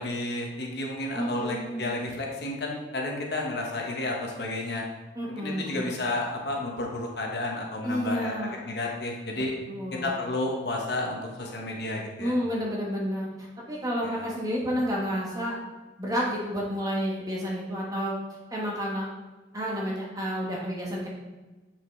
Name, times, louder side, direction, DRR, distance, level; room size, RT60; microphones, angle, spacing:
voice 1, 0.0-4.8 5.4-9.5 10.0-12.3 14.0-14.2, left 2 dB, 55° left, 0 dB, 1.2 m, -31 dB
voice 2, 1.1-1.9 5.1-5.9 7.8-8.6 9.3-9.4 9.7-10.2 12.2-13.3 13.7-15.6 16.0-18.2 18.5-19.1 19.5-21.1, equal, 20° right, -4 dB, 1.3 m, -30 dB
7.3 x 5.8 x 3.3 m, 1.2 s
head